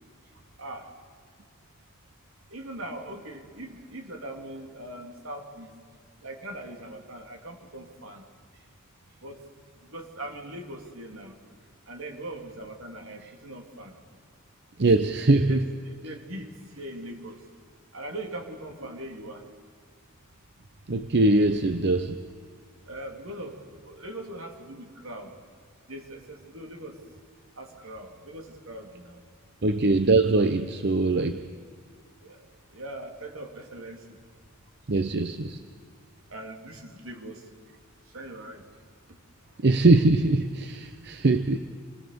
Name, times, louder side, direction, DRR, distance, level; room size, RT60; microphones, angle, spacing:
voice 1, 2.5-5.7 6.2-8.2 9.2-9.4 9.9-11.4 11.9-14.0 15.0-15.1 15.4-16.5 16.8-17.4 17.9-19.4 22.9-25.3 25.9-27.0 27.6-29.2 32.2-32.4 32.7-34.2 36.3-37.4 38.1-38.6, right 1 dB, 75° right, 2 dB, 3.4 m, -40 dB
voice 2, 14.8-15.6 20.9-22.2 29.6-31.4 34.9-35.6 39.6-41.6, right 2 dB, 55° right, 10 dB, 0.8 m, -22 dB
27.5 x 21.0 x 6.9 m, 2.1 s
head